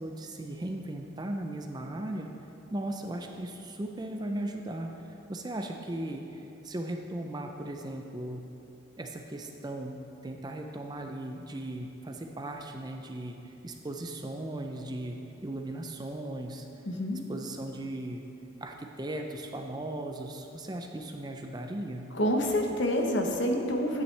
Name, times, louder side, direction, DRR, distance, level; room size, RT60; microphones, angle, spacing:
voice 1, 0.0-2.3 2.7-8.5 9.0-16.7 17.1-18.2 18.6-22.1, right 1 dB, 20° right, 3 dB, 0.5 m, -37 dB
voice 2, 16.9-17.2 22.1-24.0, equal, 60° left, 2 dB, 1.0 m, -27 dB
11.0 x 9.0 x 3.3 m, 2.9 s
head